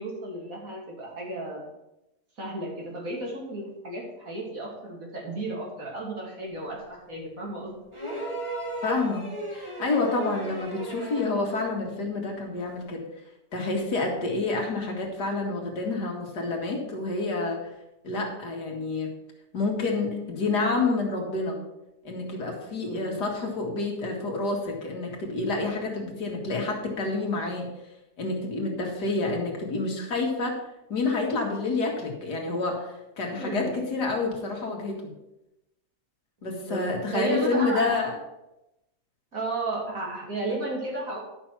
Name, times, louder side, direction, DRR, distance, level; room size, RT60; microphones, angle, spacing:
voice 1, 0.0-1.6 2.4-7.8 22.8-23.2 33.4-33.9 36.4-36.8 37.1-38.0 39.3-41.2, right 2 dB, 55° right, -2 dB, 3.2 m, -33 dB
sound 1, 7.9-11.5 12.8-12.9, right 1 dB, 20° right, 2.0 m, -35 dB
voice 2, 8.8-13.0 13.5-17.6 18.0-19.1 19.5-21.6 22.0-27.7 28.2-30.6 30.9-35.1 36.4-38.2, left 3 dB, 75° left, 1 dB, 2.4 m, -28 dB
11.5 x 5.9 x 6.0 m, 0.92 s
omnidirectional pair, 1.8 m